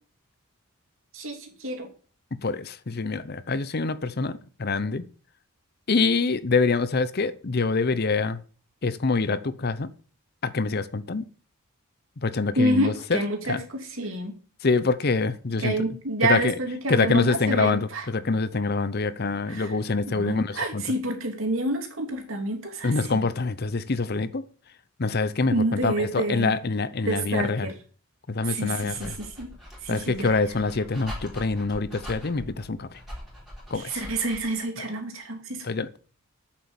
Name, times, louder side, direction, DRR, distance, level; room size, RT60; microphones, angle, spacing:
voice 1, 1.1-1.9 12.6-14.3 15.6-18.1 19.5-19.8 20.1-23.2 25.5-26.6 27.0-27.7 28.4-29.5 29.8-30.4 33.7-35.6, right 1 dB, 60° right, 2.9 m, -28 dB
voice 2, 2.4-5.0 5.9-8.4 8.8-9.9 10.4-11.3 12.2-13.2 13.5-13.6 14.6-15.7 16.2-16.5 16.9-20.8 22.8-24.4 25.0-25.5 25.8-27.7 28.3-29.2 29.9-32.9 33.7-33.8 35.6-36.0, left 4 dB, 45° left, 0.7 m, -25 dB
Dog, 28.5-34.6, equal, ahead, 4.1 m, -42 dB
8.7 x 7.5 x 7.0 m
head